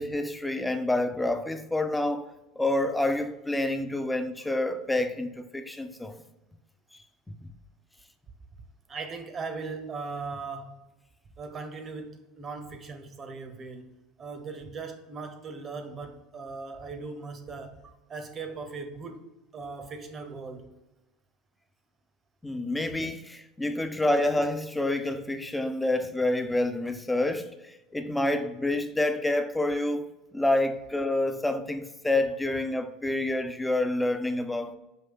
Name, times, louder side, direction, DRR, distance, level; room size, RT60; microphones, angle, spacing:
voice 1, 0.0-2.3 2.6-6.1 22.4-34.7, left 2 dB, 10° left, 0.5 m, -28 dB
voice 2, 8.9-10.8 11.4-13.9 14.2-19.3 19.5-20.7, right 4 dB, 35° right, 0.8 m, -39 dB
5.5 x 2.7 x 3.6 m
hypercardioid pair, 75°, 0 cm